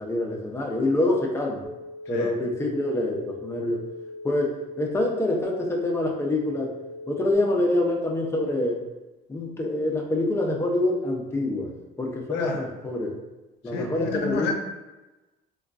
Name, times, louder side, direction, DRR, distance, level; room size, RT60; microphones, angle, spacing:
voice 1, 0.0-1.6 2.1-3.8 4.2-6.7 7.1-8.8 9.3-11.7 12.0-13.2 13.6-14.5, left 1 dB, 15° left, 0 dB, 0.6 m, -26 dB
sound 1, 1.6-7.3, left 2 dB, 30° right, 0.5 m, -40 dB
voice 2, 12.3-12.6 13.7-14.5, left 5 dB, 85° left, 2 dB, 0.6 m, -29 dB
3.6 x 2.3 x 2.4 m, 1.1 s
cardioid pair, 110°, 17 cm